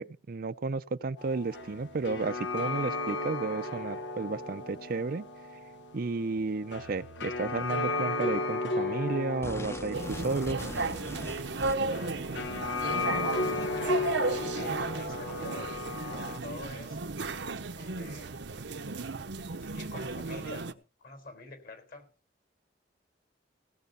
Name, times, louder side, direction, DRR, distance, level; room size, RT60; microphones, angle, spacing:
voice 1, 0.0-5.3 5.9-10.6, right 3 dB, 55° right, 0.5 m, -33 dB
sound 1, 1.2-16.4, left 2 dB, 85° left, 1.4 m, -35 dB
sound 2, 9.4-12.1, left 1 dB, 15° left, 0.7 m, -41 dB
sound 3, 9.9-20.7, right 3 dB, 80° right, 1.0 m, -34 dB
voice 2, 12.8-17.0 17.7-18.4 19.7-20.7 21.0-22.1, left 3 dB, 55° left, 4.2 m, -46 dB
17.0 x 7.9 x 5.4 m
head